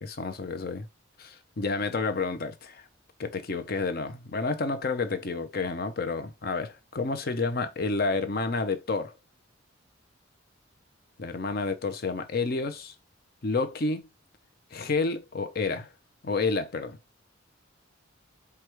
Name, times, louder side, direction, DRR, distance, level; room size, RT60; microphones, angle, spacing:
voice 1, 0.0-0.9 1.2-2.8 3.2-9.1 11.2-12.9 13.4-14.0 14.7-15.9 16.2-17.0, left 3 dB, 50° left, 0.6 m, -30 dB
4.7 x 2.3 x 4.5 m
head